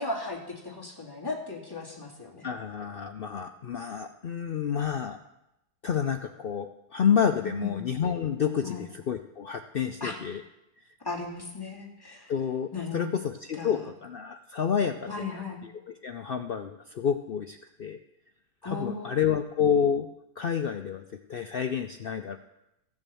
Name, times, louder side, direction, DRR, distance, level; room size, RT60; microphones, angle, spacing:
voice 1, 0.0-2.5 7.4-7.9 8.6-8.9 10.0-10.2 11.0-12.3 12.7-13.2 13.6-13.8 15.1-15.6 18.6-19.1, left 3 dB, 15° left, -3 dB, 2.3 m, -36 dB
voice 2, 2.4-5.2 5.8-10.4 12.3-18.0 18.6-20.1 20.4-21.0 21.3-22.4, left 7 dB, 85° left, 6 dB, 0.5 m, -29 dB
15.0 x 7.2 x 6.9 m, 0.88 s
omnidirectional pair, 1.7 m